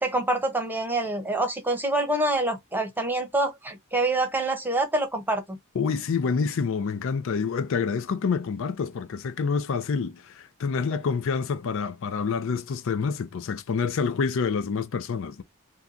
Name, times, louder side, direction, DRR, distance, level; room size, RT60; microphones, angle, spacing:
voice 1, 0.0-5.6, right 2 dB, 10° right, 0.8 m, -26 dB
voice 2, 5.8-15.4, left 5 dB, 65° left, 0.4 m, -27 dB
2.7 x 2.2 x 3.6 m
head